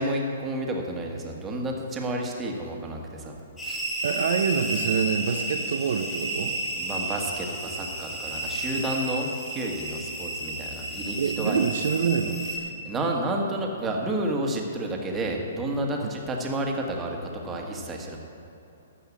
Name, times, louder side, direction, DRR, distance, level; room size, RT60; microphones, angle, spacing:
voice 1, 0.0-3.4 3.6-3.8 6.7-11.6 12.8-18.2, right 1 dB, 15° right, 1 dB, 1.6 m, -30 dB
sound 1, 3.6-12.6, right 1 dB, 10° left, 2.2 m, -32 dB
voice 2, 4.0-6.5 11.2-12.4 16.0-16.1, right 6 dB, 65° right, 6 dB, 0.8 m, -26 dB
13.5 x 5.5 x 8.4 m, 2.9 s
hypercardioid pair, 140°, 0 cm